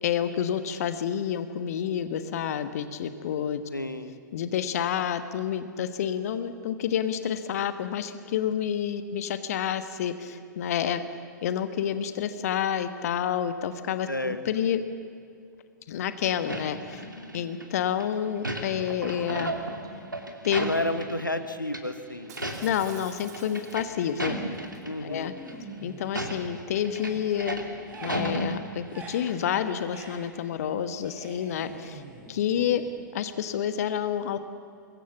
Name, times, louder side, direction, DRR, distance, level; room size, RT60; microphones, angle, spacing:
voice 1, 0.0-3.6 4.3-11.0 11.4-14.8 15.9-17.1 17.3-19.5 20.4-20.6 22.6-24.4 25.0-25.3 25.8-27.6 28.0-32.0 32.3-32.8 33.1-34.4, left 9 dB, 50° left, 11 dB, 1.2 m, -29 dB
voice 2, 3.7-4.1 14.1-14.4 20.6-22.3 24.8-25.4, left 1 dB, 85° left, 10 dB, 1.4 m, -31 dB
sound 1, 16.5-17.6 18.0-21.4 21.7-21.8 22.2-22.9 23.2-24.9 25.4-25.5 26.0-29.0 29.3-29.4, right 1 dB, 85° right, 2.7 m, -34 dB
Shatter, 22.3-24.1 24.5-24.8, right 7 dB, 55° right, 2.5 m, -49 dB
sound 2, 24.2-24.8 25.2-26.5 26.8-33.3, right 2 dB, 15° right, 6.1 m, -44 dB
25.5 x 22.0 x 7.1 m, 2.4 s
figure-of-eight pair, 105°, 10 cm